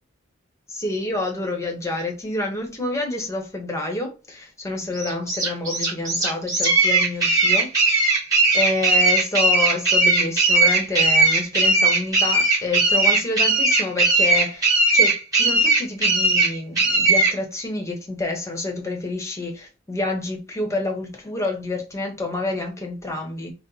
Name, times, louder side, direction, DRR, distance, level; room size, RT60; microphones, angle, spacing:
voice 1, 0.7-7.7 8.5-23.5, left 2 dB, 15° left, 1.0 m, -28 dB
sound 1, 4.9-17.3, right 3 dB, 20° right, 2.3 m, -18 dB
4.2 x 2.1 x 3.9 m
head